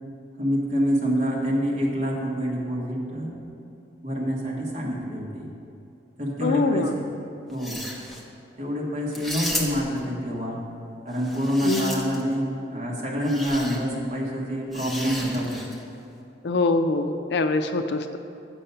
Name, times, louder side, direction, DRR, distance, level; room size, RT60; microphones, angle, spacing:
voice 1, 0.4-3.3 4.0-5.5 6.2-7.0 7.5-7.8 8.6-10.6 11.0-15.7, equal, 40° right, -3 dB, 1.5 m, -26 dB
voice 2, 6.4-6.9 11.6-11.9 16.4-18.2, left 3 dB, 60° left, 8 dB, 0.4 m, -24 dB
sound 1, 7.5-8.2 9.1-10.0 11.2-12.3 13.2-13.8 14.7-15.8, left 1 dB, ahead, 0.7 m, -33 dB
7.6 x 7.0 x 5.6 m, 2.6 s
head